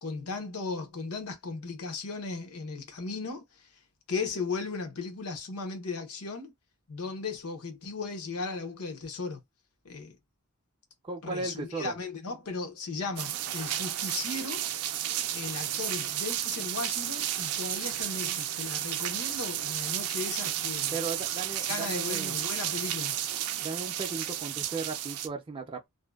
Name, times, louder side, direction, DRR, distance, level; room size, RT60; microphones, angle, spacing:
voice 1, 0.0-3.7 4.1-6.5 6.9-9.4 9.8-10.2 11.2-14.6 15.3-21.0 21.6-23.1, left 4 dB, 90° left, 0.8 m, -36 dB
voice 2, 11.0-12.0 20.9-22.3 23.6-25.9, right 4 dB, 25° right, 0.4 m, -36 dB
sound 1, 13.2-25.3, right 11 dB, 85° right, 0.4 m, -32 dB
2.6 x 2.1 x 2.2 m
head